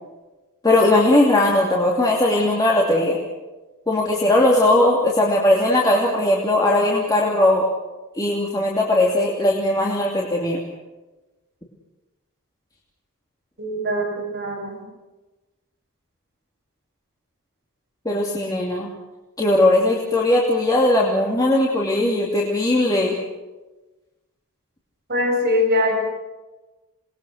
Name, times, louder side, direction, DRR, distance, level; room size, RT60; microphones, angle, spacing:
voice 1, 0.6-3.2 3.9-7.6 8.1-10.6 18.0-18.9 19.4-23.1, left 1 dB, 15° left, -3 dB, 2.7 m, -19 dB
voice 2, 13.6-14.8 25.1-26.0, left 1 dB, 45° right, -2 dB, 8.0 m, -22 dB
27.5 x 20.5 x 6.5 m, 1.2 s
head